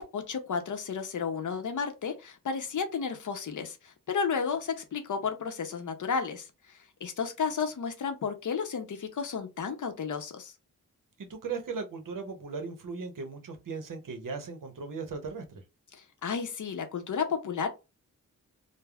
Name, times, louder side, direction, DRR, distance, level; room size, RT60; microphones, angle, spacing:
voice 1, 0.1-10.5 16.2-17.7, left 6 dB, 60° left, 0.6 m, -32 dB
voice 2, 11.2-15.5, right 4 dB, 65° right, 0.8 m, -37 dB
3.3 x 2.0 x 2.3 m
wide cardioid pair, 105°, 34 cm